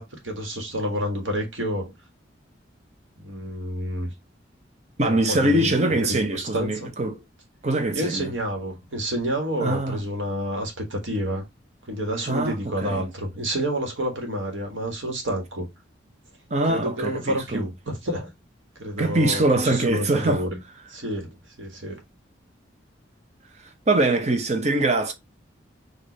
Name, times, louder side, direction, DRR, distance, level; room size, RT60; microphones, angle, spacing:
voice 1, 0.0-1.9 3.2-4.1 5.0-6.9 7.9-11.4 11.9-15.7 16.7-18.3 18.8-20.6 20.9-22.0, equal, 80° right, 1.6 m, -29 dB
voice 2, 5.0-7.2 7.6-8.3 9.6-10.0 12.3-13.0 16.5-17.6 19.0-20.4 23.9-25.1, right 2 dB, 35° right, 0.8 m, -23 dB
4.9 x 2.7 x 4.0 m
head